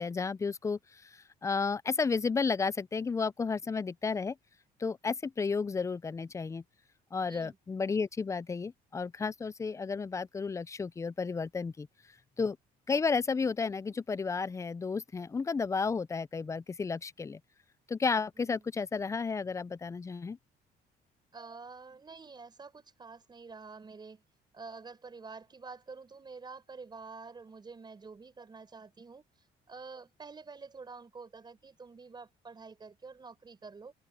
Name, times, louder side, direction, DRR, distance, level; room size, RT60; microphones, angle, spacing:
voice 1, 0.0-4.4 4.8-6.6 7.1-11.9 12.4-12.6 12.9-17.4 17.9-20.4, left 5 dB, 20° left, 0.4 m, -32 dB
voice 2, 18.4-18.7 21.3-24.2 24.5-29.2 29.7-33.9, right 4 dB, 25° right, 4.9 m, -48 dB
open air
cardioid pair, 110°, 17 cm